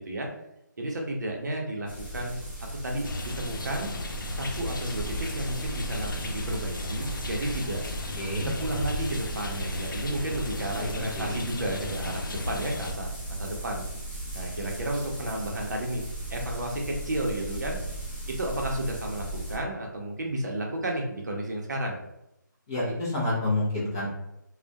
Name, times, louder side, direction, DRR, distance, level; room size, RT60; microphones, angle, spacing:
voice 1, 0.8-2.4 2.8-3.9 4.3-7.8 8.4-13.9 14.3-16.0 16.3-17.8 18.3-22.0, right 1 dB, 60° right, 0 dB, 0.6 m, -32 dB
sound 1, 1.9-19.6, right 1 dB, 25° left, 0.8 m, -37 dB
sound 2, 3.0-12.9, left 2 dB, 85° left, 0.4 m, -35 dB
voice 2, 8.2-8.5 10.9-11.3 22.7-24.1, left 2 dB, 10° left, -9 dB, 0.4 m, -28 dB
2.2 x 2.1 x 2.6 m, 0.84 s
hypercardioid pair, 170°, 11 cm